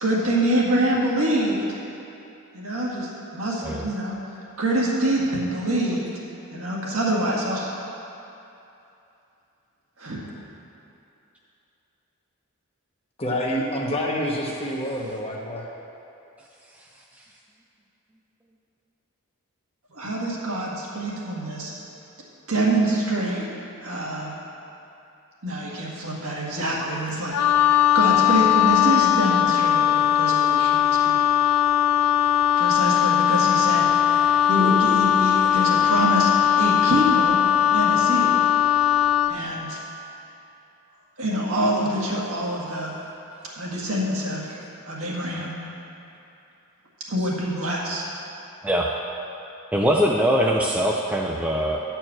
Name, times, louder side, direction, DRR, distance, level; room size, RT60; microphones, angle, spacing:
voice 1, 0.0-1.6 2.5-6.0 6.5-7.7 10.0-10.3 19.9-21.7 22.5-23.4 23.8-24.3 25.4-27.3 27.9-31.1 32.6-33.9 34.5-37.4 37.7-38.3 39.3-39.8 41.2-42.9 43.6-44.6 44.8-45.6 47.1-48.0, right 1 dB, 70° right, -4 dB, 1.9 m, -25 dB
voice 2, 13.2-15.7, equal, 25° left, -1 dB, 1.0 m, -27 dB
Wind instrument woodwind instrument, 27.3-39.4, left 10 dB, 85° left, 0.4 m, -19 dB
voice 3, 49.7-51.8, equal, 5° right, -2 dB, 0.4 m, -23 dB
10.5 x 4.5 x 7.6 m, 2.8 s
head